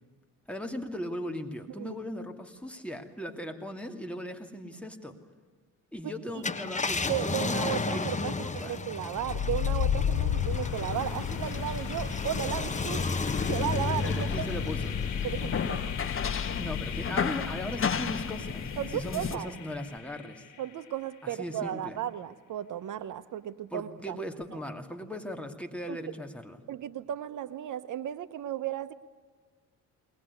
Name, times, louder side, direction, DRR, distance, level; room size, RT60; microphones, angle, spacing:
voice 1, 0.5-5.1 5.9-8.8 14.1-15.0 16.6-20.4 21.2-22.0 23.7-26.6, left 1 dB, 5° left, 4 dB, 2.6 m, -38 dB
voice 2, 6.0-6.4 7.1-13.0 13.5-14.5 15.2-15.9 18.8-19.5 20.6-24.2 25.9-26.1 26.7-28.9, right 11 dB, 65° right, 12 dB, 1.0 m, -35 dB
Car, 6.3-17.1 17.6-17.7 19.7-20.0, left 4 dB, 20° left, 1.3 m, -34 dB
sound 1, 9.2-21.0, left 9 dB, 60° left, 2.5 m, -34 dB
sound 2, 10.9-19.4, left 6 dB, 40° left, 1.4 m, -34 dB
21.5 x 19.5 x 9.7 m, 1.5 s
cardioid pair, 95°, 33 cm